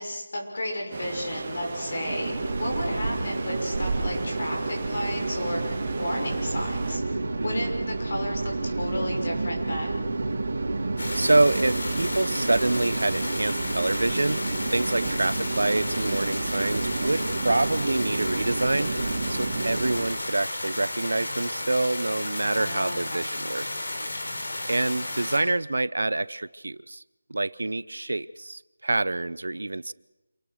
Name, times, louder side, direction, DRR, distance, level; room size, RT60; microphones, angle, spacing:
voice 1, 0.0-7.0 7.4-10.0 16.4-16.9 22.5-23.3, left 1 dB, 40° left, 1 dB, 6.1 m, -33 dB
sound 1, 0.9-7.0, right 3 dB, 20° right, 3.0 m, -36 dB
sound 2, 2.1-20.0, right 3 dB, 45° right, 3.3 m, -30 dB
voice 2, 7.4-7.7 11.1-23.7 24.6-27.0 27.3-29.9, right 2 dB, 75° right, 18 dB, 0.8 m, -26 dB
sound 3, 11.0-25.4, left 1 dB, 60° left, 4.9 m, -33 dB
28.0 x 17.5 x 6.6 m, 1.0 s
figure-of-eight pair, 180°, 0 cm